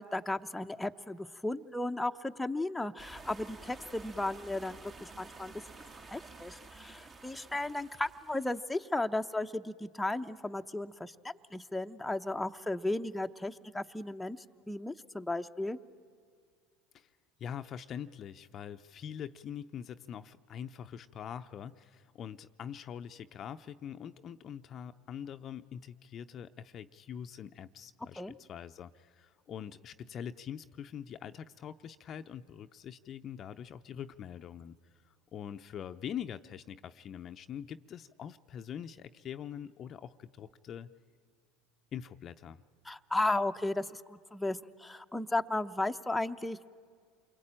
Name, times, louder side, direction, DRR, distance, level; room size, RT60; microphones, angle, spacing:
voice 1, 0.0-5.5 6.1-14.4 14.7-15.8 28.2-28.3 42.9-46.7, left 2 dB, 5° left, 6 dB, 0.8 m, -35 dB
sound 1, 3.0-8.6, right 3 dB, 30° right, 1.6 m, -51 dB
voice 2, 17.4-34.8 35.1-40.9 41.9-42.6, left 9 dB, 40° left, 9 dB, 0.7 m, -44 dB
28.5 x 23.0 x 8.9 m, 2.1 s
hypercardioid pair, 85°, 0 cm